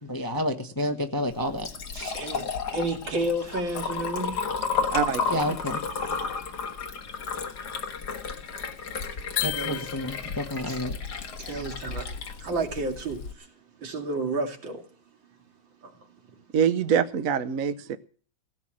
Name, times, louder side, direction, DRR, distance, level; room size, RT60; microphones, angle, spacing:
voice 1, 0.0-1.7 1.9-2.1 5.3-5.8 9.4-11.0, left 1 dB, 15° left, 0.8 m, -30 dB
Liquid, 1.3-13.3, left 5 dB, 55° left, 2.1 m, -33 dB
voice 2, 2.1-2.5 2.7-4.4 9.5-9.9 10.7-10.8 11.4-12.1 12.4-13.2 13.8-14.8, right 2 dB, 75° right, 3.1 m, -30 dB
voice 3, 4.9-5.6 16.5-18.0, right 7 dB, 55° right, 1.0 m, -25 dB
sound 1, 9.4-10.5, left 13 dB, 85° left, 1.7 m, -32 dB
16.5 x 8.1 x 7.5 m
omnidirectional pair, 2.1 m